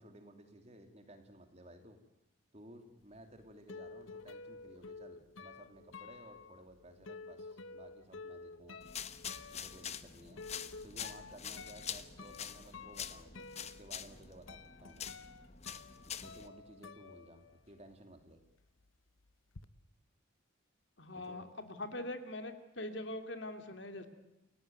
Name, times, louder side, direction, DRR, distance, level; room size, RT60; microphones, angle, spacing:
voice 1, 0.0-2.0 2.5-8.8 9.5-10.4 10.8-15.1 16.2-18.4 21.2-21.5, right 1 dB, 30° right, 6 dB, 3.0 m, -56 dB
sound 1, 3.1-17.9 18.2-19.7, left 4 dB, 75° left, 1.0 m, -51 dB
sound 2, 8.8-16.5, left 8 dB, 30° left, 1.0 m, -45 dB
voice 2, 21.0-24.1, left 1 dB, 60° left, 8 dB, 2.6 m, -42 dB
29.0 x 16.5 x 9.4 m, 0.95 s
head